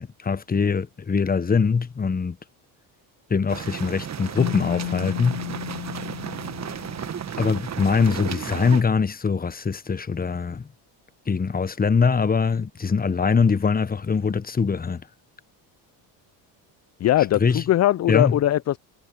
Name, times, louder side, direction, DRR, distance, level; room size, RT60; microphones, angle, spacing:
voice 1, 0.0-2.4 3.3-5.4 7.4-10.7 11.3-15.0 17.3-17.6 18.1-18.4, left 5 dB, 20° left, 1.0 m, -22 dB
sound 1, 3.5-8.8, right 8 dB, 35° right, 1.2 m, -34 dB
Keyboard (musical), 4.4-7.6, left 40 dB or more, 90° left, 6.9 m, -33 dB
voice 2, 17.0-18.8, left 13 dB, 35° left, 0.5 m, -20 dB
supercardioid pair, 85°, 48 cm